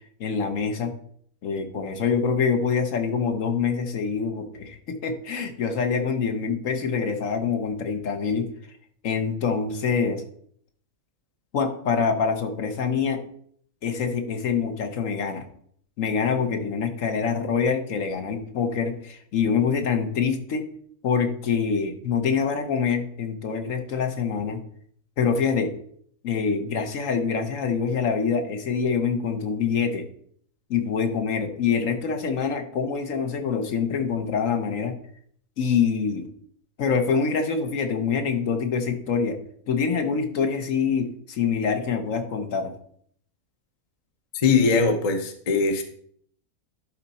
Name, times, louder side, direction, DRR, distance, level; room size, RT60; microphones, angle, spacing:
voice 1, 0.2-0.9 1.4-8.5 9.0-10.2 11.5-13.2 13.8-15.4 16.0-20.7 21.0-24.6 25.2-25.7 26.2-30.1 30.7-34.9 35.6-36.3 36.8-39.4 39.7-42.7, left 6 dB, 60° left, 6 dB, 1.2 m, -25 dB
voice 2, 44.3-45.8, left 4 dB, 35° left, 6 dB, 0.7 m, -21 dB
11.5 x 4.1 x 4.2 m, 0.64 s
omnidirectional pair, 1.6 m